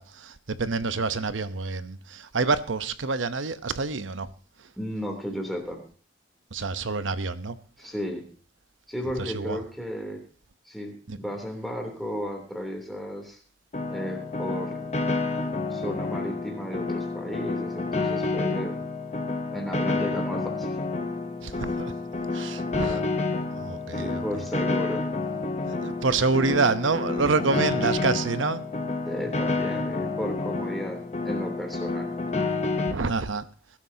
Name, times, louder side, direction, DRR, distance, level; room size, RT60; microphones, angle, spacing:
voice 1, 0.0-4.3 6.5-7.6 9.2-9.6 11.1-11.2 21.4-21.9 22.3-23.0 23.5-24.2 25.7-28.6 32.9-33.5, right 4 dB, 90° right, 0.8 m, -27 dB
voice 2, 4.8-5.8 7.8-8.3 8.9-10.2 10.6-13.4 13.9-14.9 15.7-18.8 19.5-20.8 22.8-23.1 24.0-25.0 29.1-31.0 31.2-32.1, equal, ahead, 3.1 m, -34 dB
Piano, 13.7-32.9, left 3 dB, 35° left, 0.9 m, -29 dB
20.0 x 12.0 x 2.8 m
head